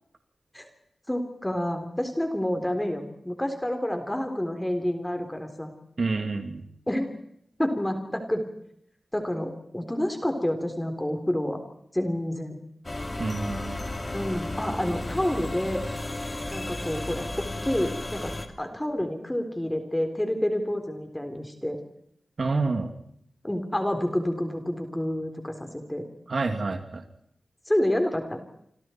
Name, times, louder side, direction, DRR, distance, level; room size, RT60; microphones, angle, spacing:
voice 1, 1.1-5.7 6.9-7.1 7.6-8.4 9.1-11.6 11.9-12.6 14.1-15.8 16.5-18.3 18.6-21.8 23.4-26.0 27.7-28.4, left 1 dB, 10° left, 5 dB, 3.8 m, -28 dB
voice 2, 6.0-6.6 13.2-13.8 22.4-22.9 26.3-27.0, right 3 dB, 60° right, 5 dB, 2.8 m, -28 dB
sound 1, 12.8-18.5, left 2 dB, 30° left, 3.0 m, -33 dB
28.5 x 26.5 x 4.6 m, 0.70 s
wide cardioid pair, 75°, 0 cm